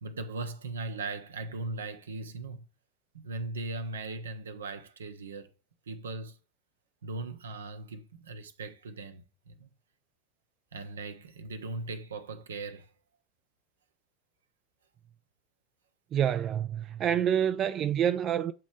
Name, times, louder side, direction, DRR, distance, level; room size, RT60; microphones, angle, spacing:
voice 1, 0.0-2.7 3.1-5.5 5.9-6.4 7.0-9.7 10.7-12.9, right 3 dB, 75° right, 0.7 m, -39 dB
voice 2, 16.1-18.5, right 9 dB, 40° right, 0.3 m, -27 dB
7.7 x 3.0 x 4.9 m
figure-of-eight pair, 75°, 0 cm